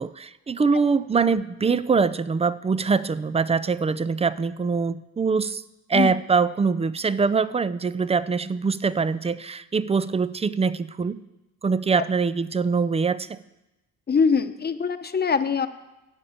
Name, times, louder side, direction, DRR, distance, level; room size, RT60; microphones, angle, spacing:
voice 1, 0.0-5.6 5.9-11.2 11.6-13.4, right 5 dB, 20° right, 15 dB, 0.5 m, -23 dB
voice 2, 14.1-15.7, left 5 dB, 30° left, 9 dB, 1.0 m, -23 dB
12.0 x 8.6 x 7.2 m, 0.98 s
cardioid pair, 90°, 30 cm